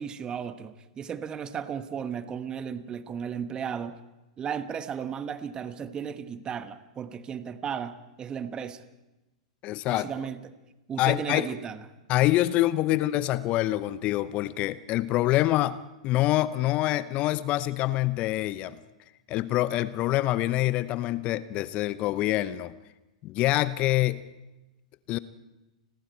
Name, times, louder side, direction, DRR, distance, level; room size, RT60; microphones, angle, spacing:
voice 1, 0.0-4.0 4.4-8.8 9.9-10.5 10.9-11.8, right 7 dB, 25° right, 11 dB, 1.3 m, -35 dB
voice 2, 9.6-10.1 11.0-11.5 12.1-15.8 16.0-18.8 19.3-22.7 23.2-24.2 25.1-25.2, left 16 dB, 40° left, 16 dB, 0.7 m, -25 dB
30.0 x 21.0 x 4.5 m, 1.0 s
hypercardioid pair, 100°, 3 cm